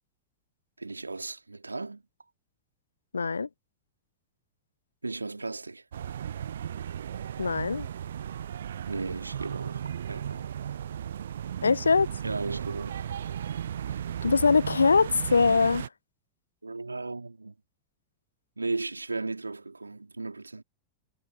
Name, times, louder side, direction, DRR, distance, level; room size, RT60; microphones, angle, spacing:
voice 1, 0.8-2.0 5.0-5.8 8.9-10.5 12.2-13.1 13.9-14.0 15.3-15.4 16.6-17.5 18.6-20.6, right 3 dB, 80° right, 3.2 m, -36 dB
voice 2, 3.1-3.5 7.4-7.9 11.6-12.1 14.2-15.9, left 5 dB, 75° left, 0.3 m, -22 dB
sound 1, 5.9-15.9, right 9 dB, 65° right, 0.8 m, -35 dB
figure-of-eight pair, 90°, 0 cm